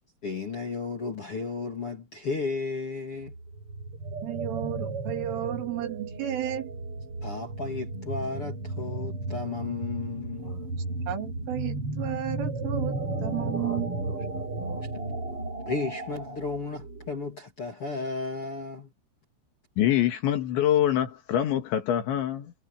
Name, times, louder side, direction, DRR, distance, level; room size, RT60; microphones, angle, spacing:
voice 1, 0.2-3.3 7.2-10.6 14.8-14.9 15.6-18.9, left 4 dB, 40° left, 2.5 m, -34 dB
sound 1, 3.2-17.4, right 2 dB, 30° right, 8.5 m, -34 dB
voice 2, 4.2-6.7 11.1-13.9, right 11 dB, 85° right, 5.6 m, -33 dB
voice 3, 19.8-22.5, left 11 dB, 70° left, 4.1 m, -25 dB
omnidirectional pair, 5.6 m